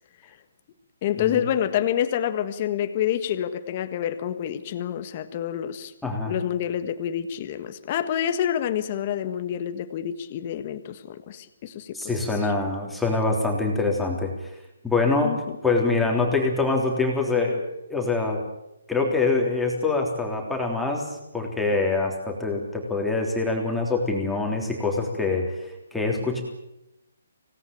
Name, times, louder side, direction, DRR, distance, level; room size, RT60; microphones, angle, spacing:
voice 1, 1.0-5.9 6.3-12.2 15.2-15.4, left 10 dB, 30° left, 1.6 m, -27 dB
voice 2, 6.0-6.4 11.9-14.3 14.8-15.3 15.6-17.6 17.9-18.4 18.9-21.1 21.3-25.5 25.9-26.4, left 3 dB, 5° left, 3.5 m, -24 dB
25.0 x 18.5 x 9.0 m
hypercardioid pair, 165°, 0 cm